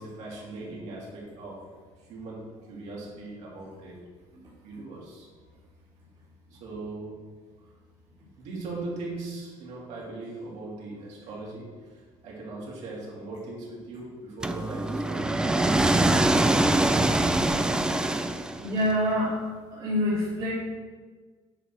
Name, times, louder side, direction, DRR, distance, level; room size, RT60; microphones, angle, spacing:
voice 1, 0.0-1.7 2.0-4.0 4.6-5.3 6.5-7.3 8.4-16.4, right 2 dB, 55° right, -5 dB, 3.0 m, -39 dB
sound 1, 14.4-18.8, right 2 dB, 5° right, 0.3 m, -23 dB
voice 2, 18.6-19.4 19.7-20.5, left 1 dB, 30° right, -8 dB, 2.1 m, -26 dB
9.0 x 4.9 x 6.1 m, 1.5 s
cardioid pair, 180°, 14 cm